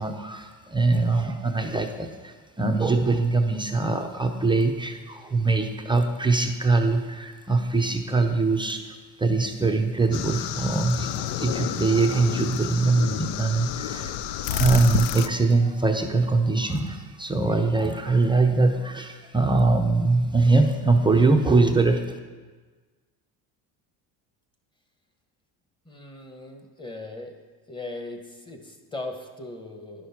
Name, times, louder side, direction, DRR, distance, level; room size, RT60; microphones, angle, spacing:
voice 1, 0.0-14.2 14.5-22.0, right 3 dB, 10° right, 4 dB, 0.5 m, -22 dB
sound 1, 10.1-15.3, left 10 dB, 70° left, 0.6 m, -30 dB
voice 2, 25.8-27.3 27.7-30.1, left 2 dB, 10° left, 4 dB, 1.1 m, -38 dB
10.5 x 6.3 x 5.8 m, 1.4 s
cardioid pair, 120°, 43 cm